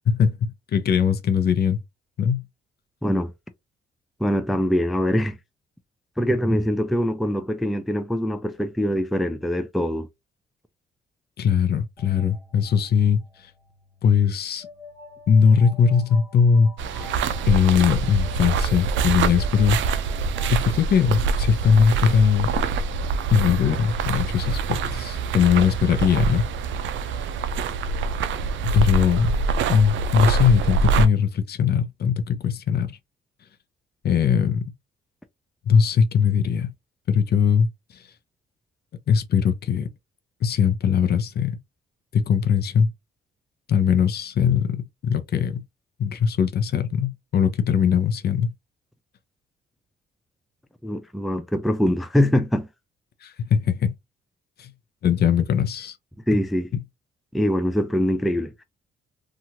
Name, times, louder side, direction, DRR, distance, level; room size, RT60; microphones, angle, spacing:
voice 1, 0.1-1.8 2.2-2.4 11.4-13.2 14.0-14.7 15.3-17.1 17.5-20.0 20.5-22.5 23.3-26.5 27.1-27.3 28.7-29.3 29.7-33.0 34.0-34.6 35.7-36.7 37.1-37.7 37.9-38.0 39.1-39.9 40.4-41.6 42.1-42.9 43.7-45.6 46.0-48.5 53.2-53.9 54.6-54.7 55.0-56.0, left 7 dB, 55° left, 0.5 m, -20 dB
voice 2, 4.2-5.4 6.2-10.1 50.8-52.7 56.3-56.7 57.3-58.6, equal, ahead, 0.3 m, -23 dB
sound 1, 12.0-20.7, left 2 dB, 20° left, 1.2 m, -46 dB
sound 2, 16.8-31.1, right 5 dB, 70° right, 0.4 m, -25 dB
2.9 x 2.4 x 2.7 m
cardioid pair, 90°, 20 cm